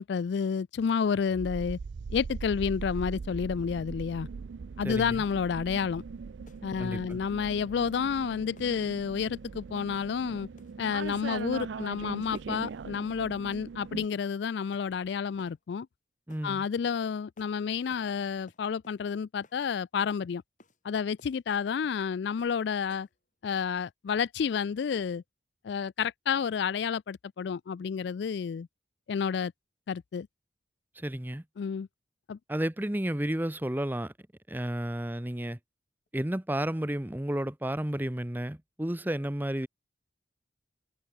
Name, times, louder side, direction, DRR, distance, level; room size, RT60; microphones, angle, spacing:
voice 1, 0.0-1.8 2.1-4.3 4.8-6.0 6.6-10.5 10.8-15.9 16.4-20.4 20.8-23.1 23.4-25.2 25.6-28.7 29.1-29.5 29.9-30.3 31.6-31.9 32.3-32.4, left 6 dB, 60° left, 0.3 m, -30 dB
sound 1, 1.3-14.1, right 5 dB, 70° right, 0.4 m, -40 dB
voice 2, 4.8-5.2 6.8-7.2 16.3-16.7 31.0-31.4 32.5-34.1 34.5-35.6 36.1-39.7, right 1 dB, 10° right, 0.8 m, -32 dB
sound 2, 5.8-6.0 6.5-6.7 7.1-7.3 7.9-8.1 8.6-8.8 9.2-9.4 9.9-10.2 10.6-10.8 11.3-11.5 11.8-12.1 12.3-12.5 12.9-13.1 13.5-13.7 14.1-14.3 14.7-14.9 15.4-15.6 16.3-16.5 16.8-17.0 17.4-17.6 17.9-18.1 18.5-19.0 19.4-19.6 20.0-20.2 20.6-20.8 21.2-21.4 21.8-22.0 22.4-22.6 22.9-23.2, left 1 dB, 40° left, 5.8 m, -58 dB
head